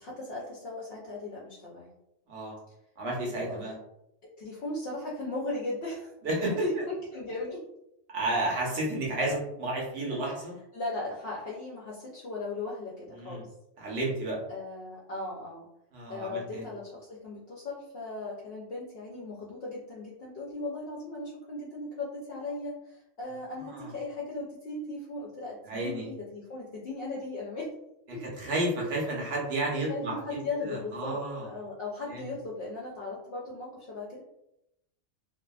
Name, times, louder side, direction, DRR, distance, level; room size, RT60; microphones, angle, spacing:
voice 1, 0.0-1.9 3.5-3.7 4.4-6.1 6.6-7.7 10.1-10.3 10.7-13.5 14.5-15.7 16.1-27.7 28.1-28.2 29.9-34.2, left 2 dB, 60° left, -4 dB, 0.7 m, -37 dB
voice 2, 3.0-3.7 6.2-6.6 8.1-10.5 13.2-13.4 13.8-14.4 15.9-16.6 23.7-23.9 25.6-26.1 28.4-31.5 32.1-32.3, right 2 dB, 60° right, -3 dB, 1.1 m, -31 dB
2.7 x 2.4 x 2.3 m, 0.82 s
omnidirectional pair, 1.3 m